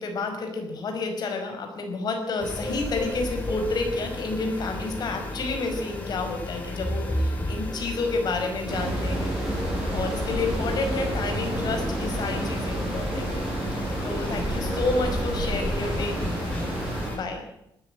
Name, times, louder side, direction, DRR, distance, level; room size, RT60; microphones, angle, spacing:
voice 1, 0.0-9.4 9.7-13.4 13.7-16.2 17.1-17.4, left 3 dB, 50° left, 4 dB, 5.3 m, -30 dB
sound 1, 2.4-17.2, left 1 dB, 20° left, 5.6 m, -33 dB
sound 2, 8.7-17.1, right 1 dB, 10° right, 7.9 m, -30 dB
20.0 x 13.0 x 9.8 m, 0.81 s
cardioid pair, 165°, 9 cm